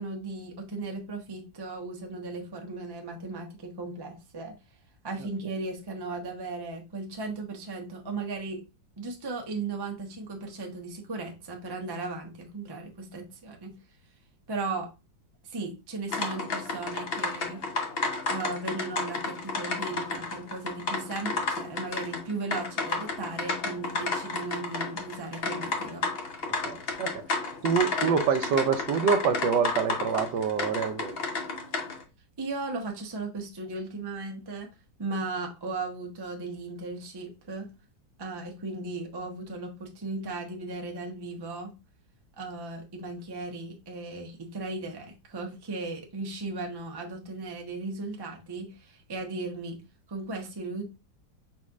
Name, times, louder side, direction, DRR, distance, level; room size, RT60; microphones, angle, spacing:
voice 1, 0.0-4.5 5.0-8.6 9.0-13.7 14.5-14.9 15.4-17.6 18.3-26.1 32.4-34.7 35.0-37.7 38.2-41.7 42.4-49.8 50.1-50.8, right 3 dB, 30° right, 0.4 m, -36 dB
sound 1, 16.1-32.0, left 3 dB, 50° left, 0.7 m, -32 dB
voice 2, 26.4-27.4 27.6-31.2, right 6 dB, 80° right, 1.3 m, -26 dB
5.2 x 4.2 x 2.3 m
omnidirectional pair, 1.9 m